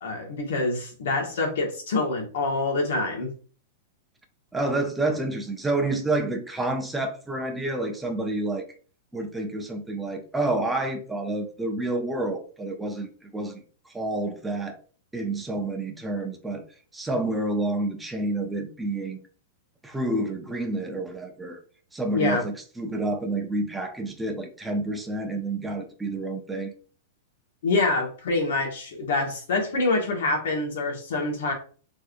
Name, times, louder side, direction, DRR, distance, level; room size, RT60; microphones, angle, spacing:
voice 1, 0.0-3.3 22.1-22.4 27.6-31.5, left 3 dB, 75° left, 2 dB, 1.5 m, -26 dB
voice 2, 4.5-8.7 9.1-14.8 15.1-16.6 16.9-19.2 19.8-21.6 21.9-26.7, right 2 dB, 5° right, 3 dB, 0.6 m, -29 dB
3.5 x 3.2 x 2.5 m, 0.39 s
hypercardioid pair, 145°, 0 cm